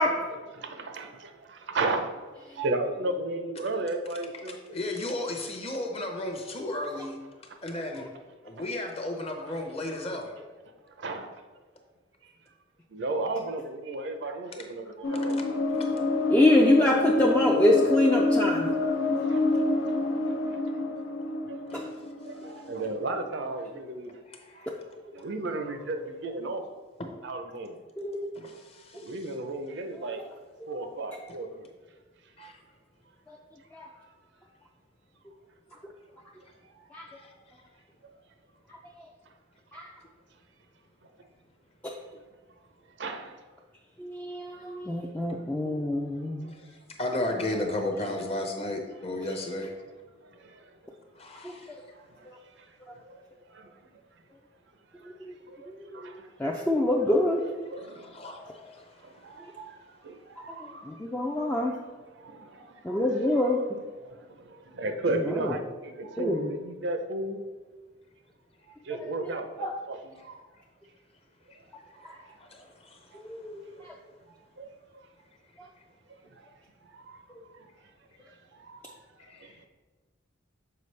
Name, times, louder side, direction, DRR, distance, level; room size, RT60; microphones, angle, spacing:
voice 1, 0.0-0.4 16.3-18.7 21.7-21.8 28.0-28.3 33.3-33.4 33.7-33.9 36.9-37.0 38.7-38.8 39.7-39.9 41.8-41.9 44.0-46.5 51.4-51.6 55.0-55.3 55.7-57.4 60.6-61.8 62.8-63.6 65.3-65.6 66.2-66.5 69.0-69.1 69.6-69.7 72.0-72.2 73.1-73.9 75.6-75.7, left 1 dB, 5° left, 0.3 m, -26 dB
voice 2, 0.6-2.2 2.5-4.8 7.5-7.6 8.6-8.7 11.0-11.3 12.2-12.3 12.9-15.4 19.0-19.7 20.5-20.6 21.5-21.6 22.2-24.1 24.5-24.7 25.1-26.6 27.2-27.8 28.9-30.2 30.7-31.7 32.4-32.5 34.0-34.1 37.2-37.3 38.0-38.1 41.0-41.1 43.0-43.4 46.4-46.5 50.2-50.7 51.9-53.2 53.5-53.7 54.9-56.3 57.7-58.2 59.0-61.0 61.4-61.5 62.2-63.0 63.4-63.6 64.0-67.4 68.8-70.4 71.9-72.4 73.1-73.2 74.6-75.1 76.3-76.5 76.8-77.7 78.5-79.7, right 2 dB, 55° right, 0.5 m, -35 dB
voice 3, 4.7-7.2 7.6-8.1 8.4-10.3 15.7-15.8 21.7-21.9 24.3-24.7 28.3-29.3 32.4-32.6 37.1-37.3 46.5-49.7 51.1-51.9 57.8-59.4 71.5-71.6 71.9-72.1 72.4-73.4 79.2-79.6, left 1 dB, 30° left, 0.7 m, -35 dB
sound 1, 15.0-23.1, left 2 dB, 70° left, 0.5 m, -27 dB
6.8 x 4.6 x 3.2 m
head